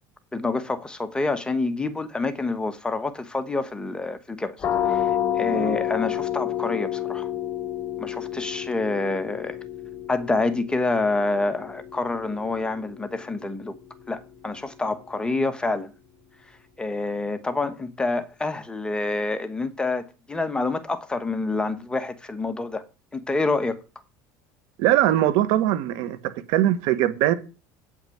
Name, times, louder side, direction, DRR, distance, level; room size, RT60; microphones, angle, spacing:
voice 1, 0.3-4.6 4.9-7.3 8.0-9.6 10.1-13.7 14.1-15.9 16.8-22.8 23.1-23.8, left 3 dB, 10° left, 1.1 m, -27 dB
sound 1, 4.6-16.1, left 11 dB, 25° left, 1.5 m, -31 dB
voice 2, 24.8-27.3, right 13 dB, 65° right, 1.2 m, -21 dB
8.9 x 5.9 x 7.8 m
supercardioid pair, 125°, 8 cm